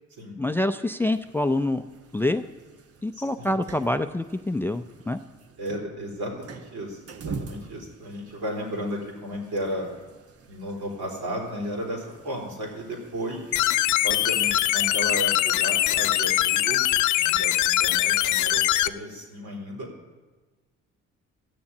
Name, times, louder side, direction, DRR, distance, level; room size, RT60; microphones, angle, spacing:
voice 1, 0.4-1.8 2.1-2.4 3.0-5.2, left 1 dB, 5° left, 10 dB, 0.4 m, -26 dB
sound 1, 1.0-16.8, right 5 dB, 50° right, 1.0 m, -46 dB
voice 2, 3.1-3.6 5.6-9.9 10.5-13.5 14.0-16.8 17.1-19.9, equal, 75° right, -1 dB, 4.0 m, -34 dB
sound 2, 13.5-18.9, left 15 dB, 75° left, 0.5 m, -22 dB
14.0 x 7.0 x 8.6 m, 1.3 s
cardioid pair, 90°, 30 cm